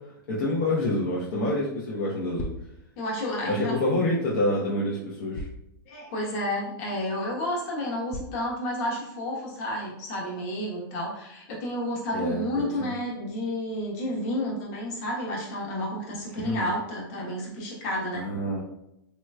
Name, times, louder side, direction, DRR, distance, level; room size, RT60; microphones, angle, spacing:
voice 1, 0.3-2.5 3.4-5.5 12.1-12.9 16.4-16.7 18.1-18.6, left 1 dB, 65° left, -6 dB, 0.9 m, -27 dB
sound 1, 2.4-2.7 4.3-4.4 5.3-5.7 6.3-6.4 7.0-7.1 8.1-8.4, left 1 dB, 25° left, 0.4 m, -37 dB
voice 2, 3.0-3.8 5.9-18.2, left 1 dB, 50° left, -3 dB, 1.2 m, -31 dB
3.1 x 3.0 x 2.3 m, 0.82 s
supercardioid pair, 140°, 12 cm